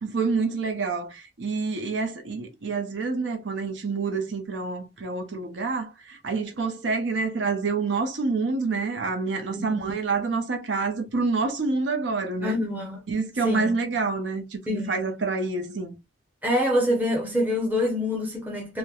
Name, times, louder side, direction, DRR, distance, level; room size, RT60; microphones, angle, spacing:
voice 1, 0.0-12.6 13.1-15.9, right 4 dB, 80° right, 0.6 m, -27 dB
voice 2, 9.5-9.9 12.4-13.0 13.4-13.7 14.7-14.9 16.4-18.8, left 1 dB, 10° right, 0.6 m, -26 dB
3.0 x 2.1 x 2.3 m
head